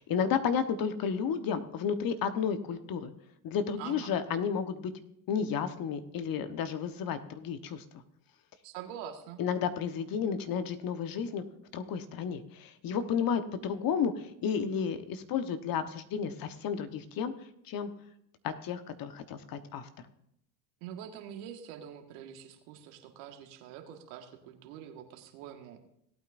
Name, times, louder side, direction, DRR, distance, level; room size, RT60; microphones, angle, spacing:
voice 1, 0.0-3.1 3.4-4.9 5.3-7.8 9.4-11.4 11.7-17.3 17.6-17.9 18.4-19.9, left 7 dB, 45° left, 9 dB, 1.2 m, -32 dB
voice 2, 3.8-4.1 8.6-9.4 20.8-25.8, right 9 dB, 70° right, 5 dB, 1.8 m, -45 dB
18.0 x 8.8 x 2.6 m, 0.75 s
hypercardioid pair, 80°, 46 cm